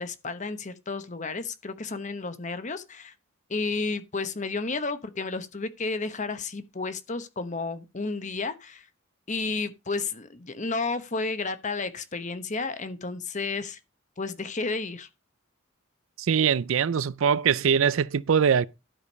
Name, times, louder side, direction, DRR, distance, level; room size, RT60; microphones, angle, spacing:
voice 1, 0.0-3.1 3.5-8.9 9.3-13.8 14.2-15.1, left 3 dB, 35° left, 1.0 m, -32 dB
voice 2, 16.2-18.7, right 7 dB, 75° right, 0.4 m, -22 dB
12.0 x 5.1 x 5.3 m
head